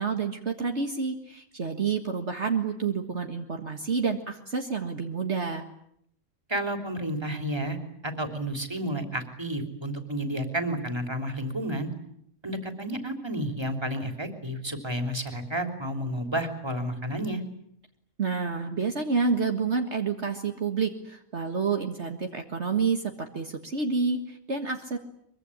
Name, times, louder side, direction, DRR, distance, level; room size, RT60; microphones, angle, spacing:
voice 1, 0.0-5.6 18.2-25.0, right 5 dB, 55° right, 4 dB, 2.0 m, -29 dB
voice 2, 6.5-7.8 8.0-11.9 12.4-17.4, right 1 dB, 20° right, 6 dB, 3.4 m, -31 dB
24.0 x 23.5 x 9.9 m, 0.73 s
omnidirectional pair, 1.4 m